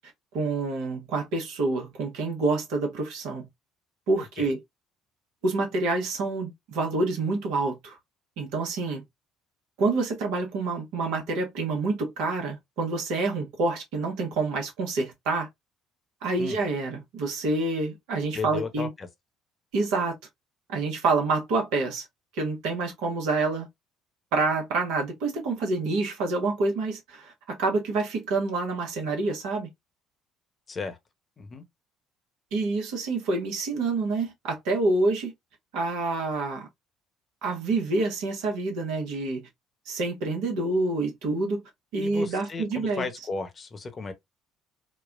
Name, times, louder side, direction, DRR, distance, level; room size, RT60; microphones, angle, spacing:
voice 1, 0.3-3.5 4.1-4.6 5.4-8.0 8.4-9.0 9.8-15.5 16.2-18.9 19.7-20.1 20.7-22.0 22.3-23.7 24.3-29.7 32.5-35.3 35.7-36.7 37.4-39.5 39.9-41.6 41.9-43.0, right 3 dB, 65° right, 1.1 m, -27 dB
voice 2, 4.2-4.5 16.4-16.6 18.3-19.1 30.7-31.0 31.4-31.6 41.9-44.1, left 4 dB, 35° left, 0.9 m, -35 dB
4.2 x 2.3 x 2.5 m
figure-of-eight pair, 55°, 0 cm